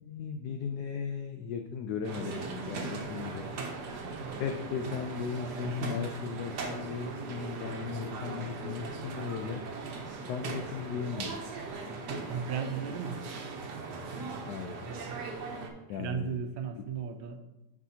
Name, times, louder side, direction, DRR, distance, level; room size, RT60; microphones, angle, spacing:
voice 1, 0.0-3.5 4.4-9.6 10.3-11.4 14.5-14.9 15.9-16.4 16.7-16.8, left 6 dB, 90° left, 5 dB, 0.8 m, -37 dB
sound 1, 2.0-15.7, right 3 dB, 60° right, 1.3 m, -39 dB
voice 2, 5.6-6.1 12.3-13.2 15.9-17.4, right 6 dB, 75° right, 7 dB, 1.5 m, -35 dB
10.5 x 4.9 x 2.8 m, 0.98 s
omnidirectional pair, 2.3 m